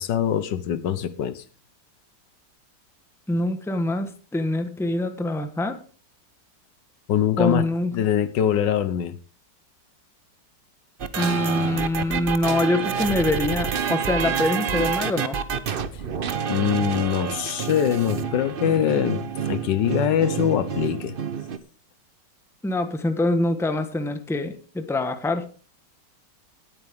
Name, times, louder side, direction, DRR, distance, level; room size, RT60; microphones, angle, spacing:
voice 1, 0.0-1.4 7.1-7.7 7.9-9.2 16.5-21.1, left 10 dB, 85° left, 14 dB, 1.6 m, -23 dB
voice 2, 3.3-5.8 7.4-7.9 11.1-15.4 22.6-25.5, left 2 dB, ahead, 8 dB, 1.0 m, -24 dB
sound 1, 11.0-21.6, right 7 dB, 45° right, 0.7 m, -28 dB
18.5 x 8.7 x 3.6 m, 0.38 s
omnidirectional pair, 1.9 m